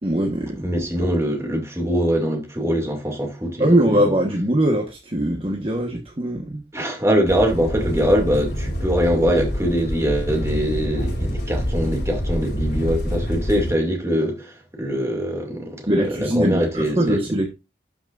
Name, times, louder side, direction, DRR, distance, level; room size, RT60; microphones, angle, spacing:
voice 1, 0.0-1.1 3.6-6.6 15.9-17.5, right 1 dB, 30° right, 1.2 m, -21 dB
voice 2, 0.6-4.0 6.7-15.9 16.2-17.2, equal, 15° right, 2.4 m, -23 dB
sound 1, 7.3-13.7, equal, 65° left, 3.3 m, -26 dB
12.5 x 5.9 x 2.5 m
head